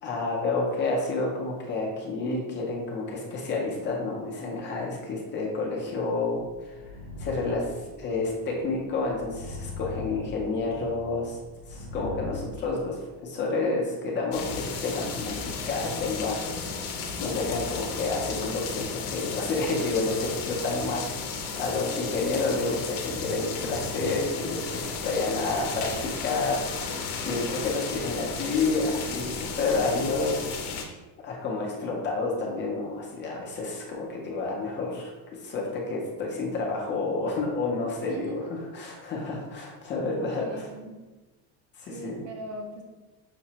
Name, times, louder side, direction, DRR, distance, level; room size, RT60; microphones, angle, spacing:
voice 1, 0.0-6.9 7.2-11.4 11.7-15.3 15.7-16.8 17.2-21.0 21.3-30.5 31.2-35.1 35.4-38.4 38.7-40.7 41.8-42.2, left 3 dB, 30° left, -1 dB, 0.5 m, -29 dB
sound 1, 6.4-12.6, left 3 dB, 80° right, 0.8 m, -41 dB
sound 2, 14.3-30.8, left 5 dB, 65° left, 0.7 m, -34 dB
voice 2, 38.1-38.5 40.4-41.0 41.9-42.8, right 1 dB, 40° right, 2 dB, 0.4 m, -39 dB
5.8 x 2.0 x 2.7 m, 1.2 s
cardioid pair, 165°, 40 cm